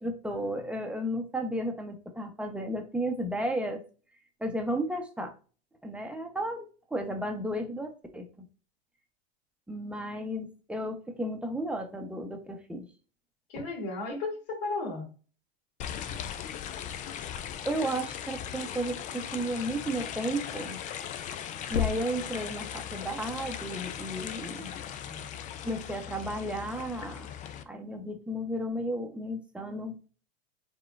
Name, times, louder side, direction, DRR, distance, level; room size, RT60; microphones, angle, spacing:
voice 1, 0.0-3.8 4.4-5.3 5.8-6.7 6.9-8.5 9.7-12.9 17.6-20.8 21.7-24.7 25.6-27.3 27.7-30.0, right 1 dB, 5° right, 4 dB, 0.8 m, -33 dB
voice 2, 13.5-15.1 24.3-25.3, left 3 dB, 70° left, 0 dB, 2.3 m, -36 dB
sound 1, 15.8-27.6, left 9 dB, 25° left, 0.3 m, -39 dB
sound 2, 21.3-21.4 21.7-22.8 25.8-26.4, left 10 dB, 90° left, 0.5 m, -33 dB
4.8 x 3.7 x 2.5 m, 0.37 s
hypercardioid pair, 105°, 30 cm